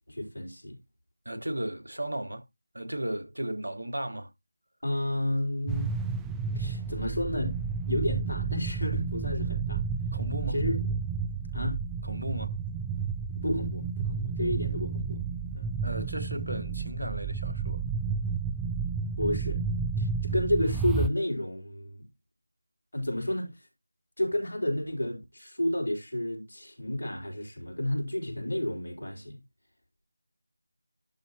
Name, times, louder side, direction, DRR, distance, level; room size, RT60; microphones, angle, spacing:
voice 1, 0.1-0.8 4.8-5.9 6.5-7.6 7.8-9.8 10.5-10.7 11.5-11.8 13.3-15.2 15.5-15.8 19.2-19.6 20.0-22.0 22.9-23.6 24.2-29.4, left 1 dB, 70° left, 4.6 m, -31 dB
voice 2, 1.2-2.4 2.7-4.3 10.1-10.6 12.0-12.6 15.8-17.8, right 1 dB, 75° right, 1.6 m, -35 dB
sound 1, 5.7-21.1, right 5 dB, 5° right, 0.4 m, -31 dB
11.5 x 4.0 x 4.2 m
figure-of-eight pair, 165°, 0 cm